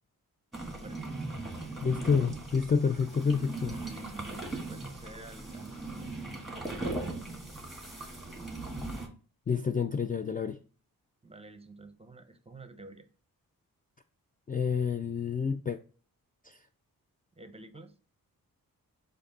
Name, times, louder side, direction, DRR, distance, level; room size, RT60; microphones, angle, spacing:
sound 1, 0.5-9.1, right 2 dB, ahead, 1.6 m, -39 dB
voice 1, 0.7-1.1 3.7-5.8 6.5-7.2 11.2-13.1 17.4-17.9, right 2 dB, 15° right, 0.7 m, -50 dB
voice 2, 1.8-3.8 9.5-10.6 14.5-15.8 16.4-16.6, left 6 dB, 25° left, 0.3 m, -28 dB
5.0 x 2.6 x 4.0 m
cardioid pair, 45°, 36 cm